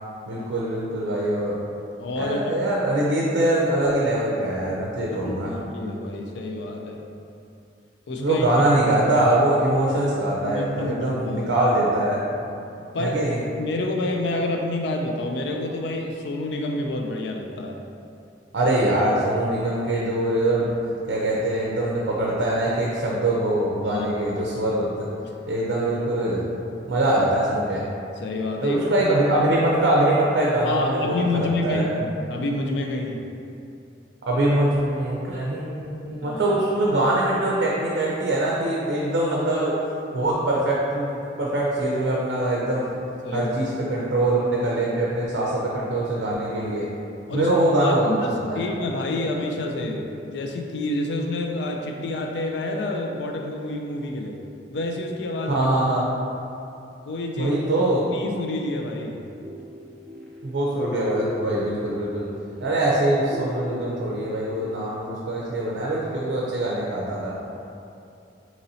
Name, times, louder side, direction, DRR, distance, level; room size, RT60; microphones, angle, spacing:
voice 1, 0.3-1.6 2.2-5.6 8.2-12.2 13.0-13.4 18.5-20.7 21.1-25.1 25.5-26.5 26.9-27.9 28.6-31.8 34.3-39.8 40.1-43.0 43.3-46.9 47.3-48.6 55.5-56.1 57.4-58.1 60.4-62.3 62.6-67.3, right 1 dB, 75° right, -4 dB, 0.5 m, -23 dB
voice 2, 2.0-2.7 5.1-7.0 8.1-8.5 10.4-11.6 12.8-13.2 13.6-17.8 23.9-24.1 24.3-24.4 28.2-29.1 30.6-33.2 36.2-36.5 43.2-43.5 47.3-47.5 47.8-54.4 54.7-55.7 57.0-57.6 58.1-59.2, left 2 dB, 70° left, 2 dB, 0.4 m, -28 dB
sound 1, 59.4-64.9, left 2 dB, 5° left, 0.5 m, -37 dB
4.1 x 2.9 x 2.7 m, 2.7 s
head